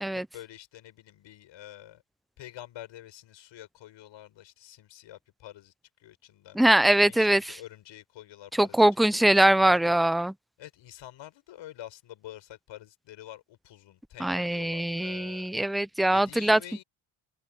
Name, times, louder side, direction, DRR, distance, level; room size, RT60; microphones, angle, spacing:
voice 1, 0.1-2.0 2.4-5.7 6.0-6.6 7.0-8.8 9.1-10.0 10.6-15.5 16.1-16.8, left 13 dB, 60° left, 7.5 m, -47 dB
voice 2, 6.5-7.6 8.5-10.3 14.2-16.6, right 1 dB, ahead, 0.5 m, -22 dB
open air
cardioid pair, 105°, 50 cm